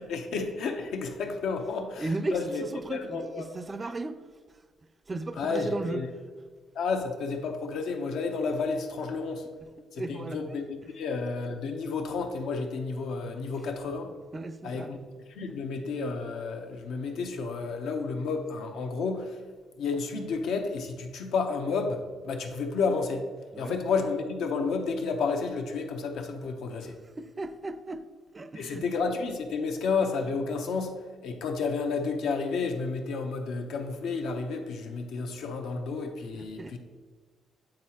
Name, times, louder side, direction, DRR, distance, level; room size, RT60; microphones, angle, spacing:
voice 1, 0.1-2.6 2.9-3.4 5.4-6.1 6.7-9.5 9.9-14.1 14.6-15.0 15.3-19.4 19.8-23.2 23.6-27.0 28.6-30.9 31.2-36.8, left 4 dB, 80° left, 0.7 m, -31 dB
voice 2, 2.0-4.6 5.1-6.0 9.9-10.6 14.3-14.9 23.5-23.8 26.8-28.9 36.3-36.8, right 2 dB, 30° right, 0.4 m, -36 dB
8.7 x 3.8 x 2.9 m
cardioid pair, 90°, 0 cm